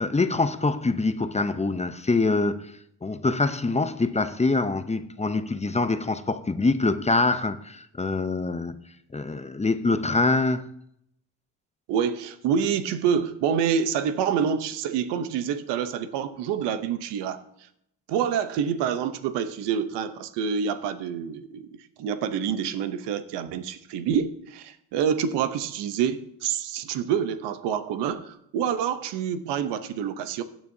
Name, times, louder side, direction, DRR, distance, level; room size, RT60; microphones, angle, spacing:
voice 1, 0.0-2.7 3.0-8.8 9.1-10.8, left 3 dB, 15° left, 0.6 m, -25 dB
voice 2, 11.9-17.4 18.1-21.7 22.0-30.4, right 7 dB, 90° right, 0.8 m, -27 dB
16.0 x 8.9 x 2.7 m
supercardioid pair, 65°, 41 cm